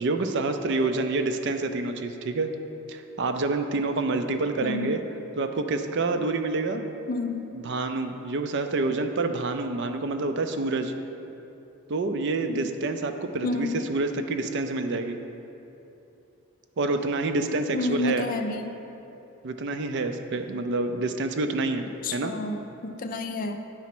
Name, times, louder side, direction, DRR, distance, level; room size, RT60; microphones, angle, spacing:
voice 1, 0.0-2.5 2.9-5.0 5.4-6.9 7.5-10.9 11.9-15.2 16.8-18.3 19.4-21.9 22.1-22.3, right 3 dB, 50° right, 7 dB, 0.4 m, -27 dB
sound 1, 0.7-2.6, left 9 dB, 15° left, 0.8 m, -48 dB
voice 2, 4.6-5.0 6.1-6.2 7.1-7.5 12.5-12.6 13.4-13.8 17.7-18.7 22.0-23.6, left 2 dB, 40° left, 6 dB, 0.4 m, -30 dB
9.4 x 4.2 x 5.9 m, 2.9 s
head